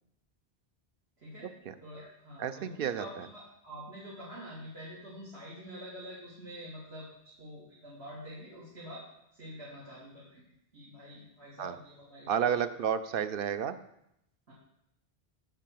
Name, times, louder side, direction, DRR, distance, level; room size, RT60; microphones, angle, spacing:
voice 1, 1.2-1.5 1.8-9.0 9.3-10.4 10.7-12.6 13.1-13.2 14.5-14.6, equal, 90° right, -8 dB, 3.0 m, -46 dB
voice 2, 2.4-3.0 11.6-11.7 12.3-13.8, right 8 dB, 65° right, 12 dB, 0.8 m, -31 dB
8.8 x 5.6 x 7.6 m, 0.79 s
omnidirectional pair, 1.0 m